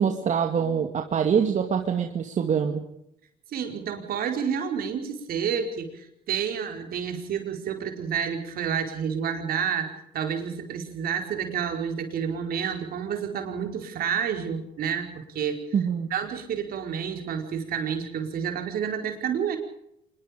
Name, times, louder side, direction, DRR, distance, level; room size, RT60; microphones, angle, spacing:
voice 1, 0.0-2.8 15.7-16.1, right 7 dB, 45° right, 4 dB, 2.4 m, -24 dB
voice 2, 3.5-15.7 16.1-19.6, right 7 dB, 60° right, 5 dB, 4.8 m, -29 dB
26.0 x 21.5 x 5.3 m, 0.78 s
cardioid pair, 110°, 17 cm